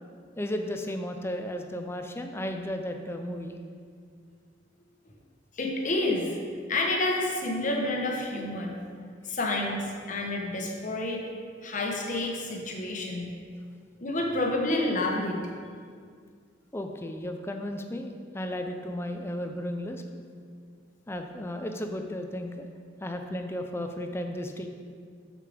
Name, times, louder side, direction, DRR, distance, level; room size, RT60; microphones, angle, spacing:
voice 1, 0.4-3.5 16.7-20.0 21.1-22.7 23.0-24.7, left 1 dB, 10° left, 5 dB, 0.5 m, -34 dB
voice 2, 5.6-6.3 6.7-8.8 9.2-11.2 11.6-13.4 14.0-15.5, left 2 dB, 40° left, 0 dB, 1.1 m, -29 dB
6.7 x 6.6 x 5.1 m, 2.1 s
head